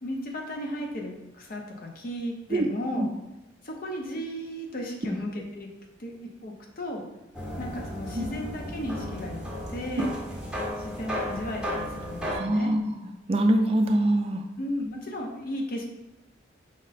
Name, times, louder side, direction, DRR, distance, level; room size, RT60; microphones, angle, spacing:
voice 1, 0.0-3.1 3.6-5.7 6.0-7.0 7.6-9.4 9.7-10.1 10.8-12.7 14.6-15.8, left 1 dB, 50° left, 1 dB, 0.7 m, -35 dB
sound 1, 7.3-12.4, equal, 5° right, 0.7 m, -34 dB
voice 2, 12.3-12.8 13.3-14.4, right 1 dB, 30° right, 4 dB, 0.4 m, -23 dB
5.1 x 2.1 x 4.0 m, 0.99 s
head